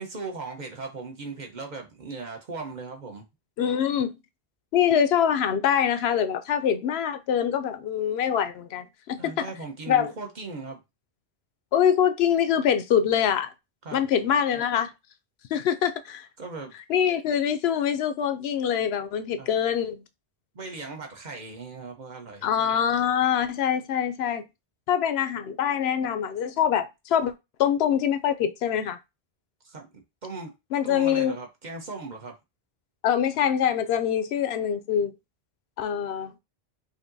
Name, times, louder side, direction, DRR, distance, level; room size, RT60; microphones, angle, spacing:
voice 1, 0.0-3.3 9.2-10.8 13.8-14.1 16.4-16.7 19.4-19.5 20.5-22.5 29.6-29.9 30.2-30.5 30.8-32.4, right 3 dB, 45° right, 1.0 m, -38 dB
voice 2, 3.6-4.1 4.7-9.5 9.9-10.1 11.7-13.5 13.9-14.9 15.5-16.3 16.9-20.0 22.4-24.4 24.9-27.3 27.6-29.0 30.7-31.4 33.0-35.1 35.8-36.3, left 9 dB, 80° left, 0.8 m, -24 dB
5.0 x 2.8 x 2.6 m
omnidirectional pair, 1.0 m